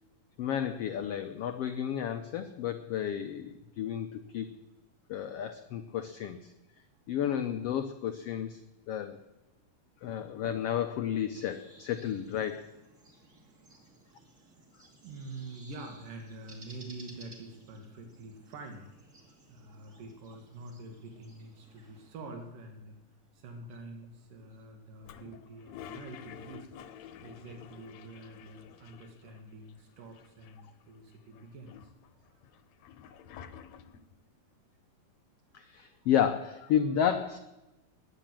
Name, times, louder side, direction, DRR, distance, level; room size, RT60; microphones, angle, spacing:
voice 1, 0.4-4.6 5.1-6.4 7.1-8.6 8.9-9.2 10.0-12.7 35.5-37.4, left 9 dB, 90° left, 9 dB, 1.3 m, -32 dB
sound 1, 11.3-22.1, right 2 dB, 25° right, 2.5 m, -57 dB
voice 2, 13.1-13.8 14.1-18.9 19.5-23.0 23.3-26.7 27.2-32.2 35.9-36.1, right 2 dB, 85° right, 3 dB, 3.5 m, -47 dB
Toilet flush, 25.0-29.4 29.7-29.8 30.0-30.8 31.3-34.2, left 9 dB, 70° left, 1.9 m, -50 dB
20.5 x 9.5 x 7.5 m, 1.0 s
omnidirectional pair, 3.7 m